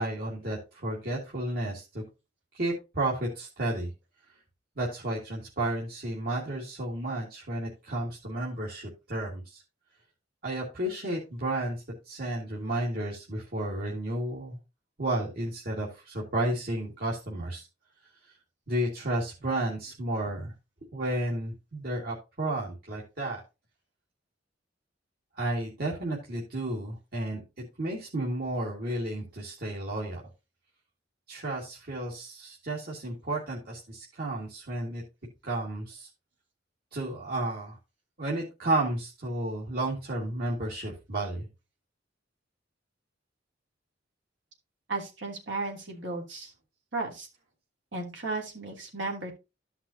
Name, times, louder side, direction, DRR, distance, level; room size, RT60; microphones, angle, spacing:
voice 1, 0.0-2.0 2.5-3.9 4.8-9.6 10.4-14.6 15.0-17.7 18.2-18.3 18.7-20.5 20.9-23.4 25.4-30.2 31.3-35.0 35.4-36.1 36.9-37.8 38.2-41.5, right 1 dB, 55° right, -4 dB, 2.3 m, -32 dB
voice 2, 44.9-46.5 46.9-47.3 47.9-49.3, right 3 dB, 75° right, -1 dB, 3.1 m, -34 dB
14.0 x 5.9 x 2.8 m, 0.27 s
head